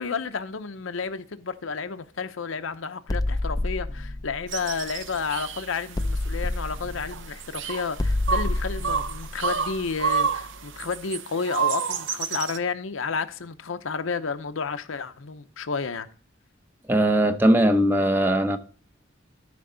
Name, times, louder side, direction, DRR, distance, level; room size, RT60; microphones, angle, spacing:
voice 1, 0.0-16.1, left 5 dB, 75° left, 0.7 m, -31 dB
sound 1, 3.1-5.4 6.0-10.6, left 2 dB, 20° left, 0.4 m, -29 dB
sound 2, 4.5-12.6, right 6 dB, 65° right, 0.6 m, -30 dB
voice 2, 16.9-18.6, right 1 dB, 10° right, 0.7 m, -20 dB
13.0 x 5.2 x 3.9 m
head